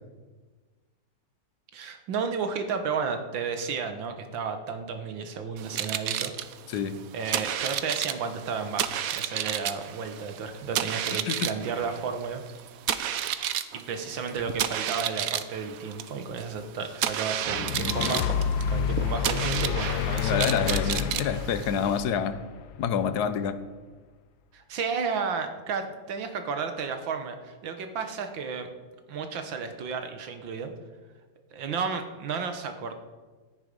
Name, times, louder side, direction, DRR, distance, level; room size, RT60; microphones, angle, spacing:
voice 1, 1.7-6.3 7.1-12.4 13.0-13.2 13.9-18.4 18.7-20.9 24.5-28.7 29.1-30.7 31.5-32.9, right 5 dB, 90° right, 7 dB, 1.9 m, -32 dB
sound 1, 5.6-22.0, right 10 dB, 65° right, 0.9 m, -32 dB
voice 2, 6.7-7.0 11.3-11.5 20.2-22.4 22.8-23.6, left 7 dB, 65° left, 11 dB, 1.3 m, -27 dB
sound 2, 17.5-22.8, left 8 dB, 85° left, 1.4 m, -29 dB
13.5 x 10.0 x 5.3 m, 1.4 s
omnidirectional pair, 2.0 m